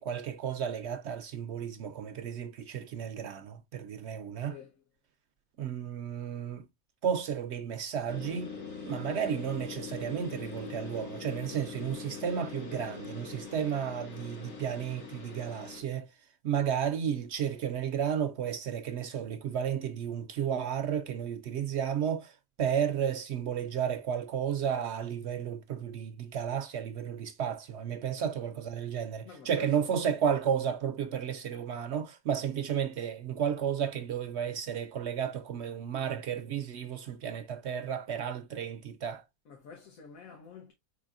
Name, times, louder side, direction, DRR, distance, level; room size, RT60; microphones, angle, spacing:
voice 1, 0.0-4.6 5.6-6.7 7.0-8.6 8.8-16.1 16.4-39.2, right 8 dB, 65° right, 0.7 m, -33 dB
voice 2, 4.4-4.8 28.2-28.3 29.2-29.9 39.5-40.7, left 6 dB, 70° left, 1.4 m, -49 dB
sound 1, 8.1-15.8, left 5 dB, 90° left, 2.2 m, -43 dB
4.9 x 4.1 x 2.4 m
omnidirectional pair, 1.5 m